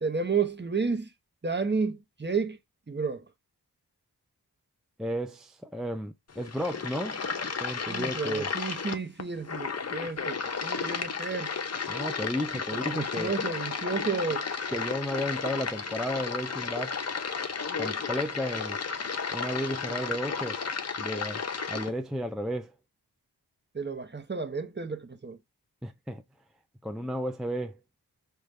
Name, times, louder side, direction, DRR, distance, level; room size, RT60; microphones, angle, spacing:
voice 1, 0.0-1.1 1.4-2.6 2.9-3.2 7.9-11.5 12.7-14.4 23.7-25.4, right 5 dB, 30° right, 0.8 m, -31 dB
voice 2, 5.0-7.2 7.6-8.5 11.9-13.3 14.7-16.9 17.8-18.8 19.3-20.6 21.0-22.7 25.8-26.2 26.8-27.8, equal, ahead, 0.4 m, -33 dB
sound 1, 6.3-21.9, left 5 dB, 40° left, 0.7 m, -33 dB
4.9 x 2.3 x 3.2 m
cardioid pair, 55°, 39 cm